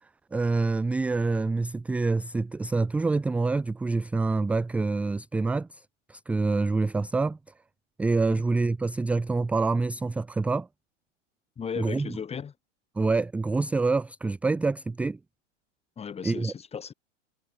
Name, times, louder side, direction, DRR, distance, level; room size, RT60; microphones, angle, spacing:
voice 1, 0.0-7.4 8.0-10.7 11.8-12.1 13.0-15.2 16.2-16.5, right 3 dB, 5° right, 0.4 m, -26 dB
voice 2, 11.6-12.5 16.0-16.9, left 7 dB, 15° left, 1.9 m, -36 dB
hypercardioid pair, 120°, 37 cm